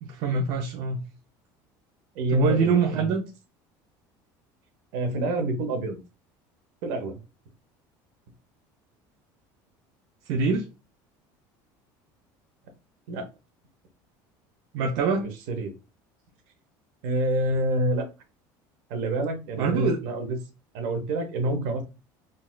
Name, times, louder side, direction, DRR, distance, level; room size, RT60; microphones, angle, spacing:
voice 1, 0.0-1.0 2.3-3.2 10.3-10.6 14.7-15.3 19.6-20.0, right 5 dB, 50° right, 2 dB, 0.5 m, -24 dB
voice 2, 2.1-3.1 4.9-6.0 6.8-7.2 13.1-13.3 15.1-15.7 17.0-18.1 18.9-20.4 20.7-21.8, right 1 dB, 70° right, 6 dB, 0.9 m, -27 dB
3.9 x 2.4 x 2.2 m, 0.29 s
cardioid pair, 180°, 10 cm